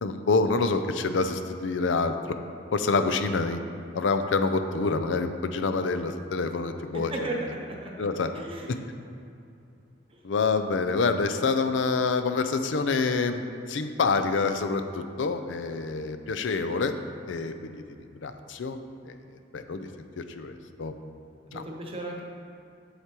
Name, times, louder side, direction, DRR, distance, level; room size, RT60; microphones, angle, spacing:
voice 1, 0.0-2.4 2.7-3.6 3.9-7.1 8.0-8.3 8.7-8.8 10.2-16.9 17.3-17.7 18.2-18.8 19.1-19.2 19.5-19.9 20.2-20.9 21.5-21.6, left 4 dB, 80° left, 9 dB, 0.5 m, -27 dB
voice 2, 6.9-7.9 8.3-8.8 10.1-10.2 21.5-22.2, right 1 dB, 30° right, 0 dB, 0.9 m, -35 dB
8.1 x 7.9 x 3.0 m, 2.6 s
head